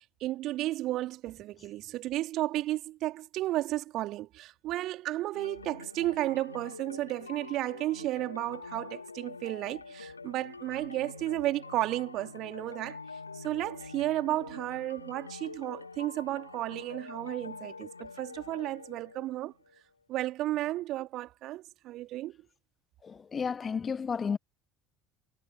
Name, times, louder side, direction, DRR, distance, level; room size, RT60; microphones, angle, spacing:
voice 1, 0.0-13.0 13.3-19.5 20.1-22.4, right 15 dB, 50° right, 3.0 m, -33 dB
sound 1, 5.3-19.8, left 4 dB, 85° left, 2.9 m, -46 dB
voice 2, 23.0-24.4, left 6 dB, 30° left, 0.9 m, -32 dB
figure-of-eight pair, 65°, 0 cm